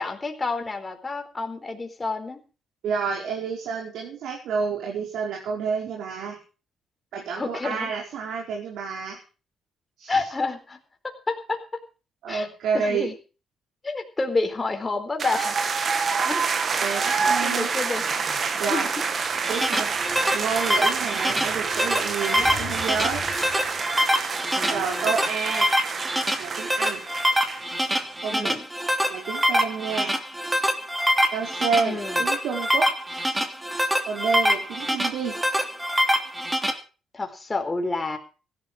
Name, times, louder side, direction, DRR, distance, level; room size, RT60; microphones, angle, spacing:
voice 1, 0.0-2.4 7.3-7.9 10.1-10.8 11.3-11.6 12.3-12.5 12.7-13.1 13.8-15.5 16.1-16.5 16.8-18.0 18.7-18.9 24.5-25.2 28.3-28.7 31.8-32.3 37.1-38.2, left 3 dB, 25° left, 5 dB, 4.2 m, -29 dB
voice 2, 2.8-6.4 7.1-9.2 10.0-10.3 12.2-13.1 16.8-17.7 18.6-18.9 19.5-19.9 20.3-23.2 24.7-25.7 26.4-27.0 28.2-28.5 29.1-30.2 31.3-32.9 34.0-35.4, right 5 dB, 80° right, -1 dB, 5.1 m, -29 dB
sound 1, 15.2-27.9, right 5 dB, 45° right, 2.1 m, -27 dB
sound 2, 19.2-36.7, equal, 10° right, 3.0 m, -25 dB
sound 3, 19.3-24.5, left 6 dB, 50° left, 3.6 m, -42 dB
16.0 x 12.5 x 4.9 m, 0.35 s
cardioid pair, 90°, 0 cm